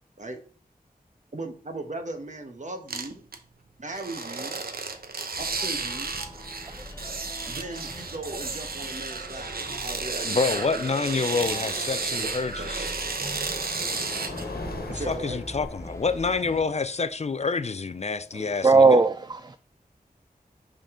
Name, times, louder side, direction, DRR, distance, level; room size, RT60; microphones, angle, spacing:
voice 1, 1.3-3.2 3.8-4.6 5.6-6.2 7.5-9.5 9.8-12.9 14.9-15.4, right 2 dB, 50° right, 1.2 m, -38 dB
sound 1, 2.9-3.4 3.9-15.0 15.6-16.2, right 4 dB, 80° right, 0.7 m, -33 dB
sound 2, 4.9-5.0 5.3-5.7 7.6-7.7 10.7-18.8, left 2 dB, 85° left, 1.4 m, -43 dB
sound 3, 5.4-16.6, left 1 dB, 20° left, 0.8 m, -43 dB
voice 2, 10.2-12.9 14.9-19.0, left 4 dB, 45° left, 0.4 m, -28 dB
voice 3, 18.6-19.6, right 3 dB, 30° right, 0.4 m, -19 dB
5.3 x 5.1 x 3.7 m
wide cardioid pair, 65°, 16 cm